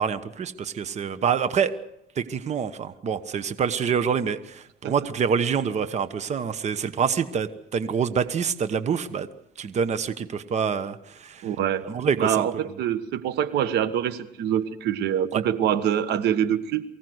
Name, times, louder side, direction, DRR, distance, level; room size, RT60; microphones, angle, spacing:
voice 1, 0.0-1.7 2.2-9.3 9.6-11.5 11.8-12.5 15.3-15.4, right 6 dB, 40° right, 12 dB, 1.2 m, -26 dB
voice 2, 11.4-11.8 12.2-16.8, right 10 dB, 80° right, 13 dB, 1.4 m, -25 dB
23.5 x 16.5 x 8.0 m, 0.79 s
cardioid pair, 110°, 17 cm